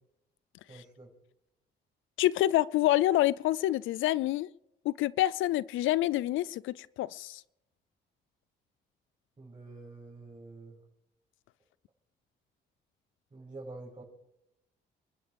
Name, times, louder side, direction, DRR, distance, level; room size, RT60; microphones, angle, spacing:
voice 1, 0.7-1.1 9.4-10.8 13.3-14.0, right 2 dB, 25° right, -4 dB, 7.3 m, -47 dB
voice 2, 2.2-4.5 4.8-7.4, left 15 dB, 85° left, 20 dB, 0.5 m, -27 dB
29.5 x 11.5 x 3.5 m, 0.88 s
cardioid pair, 90°, 20 cm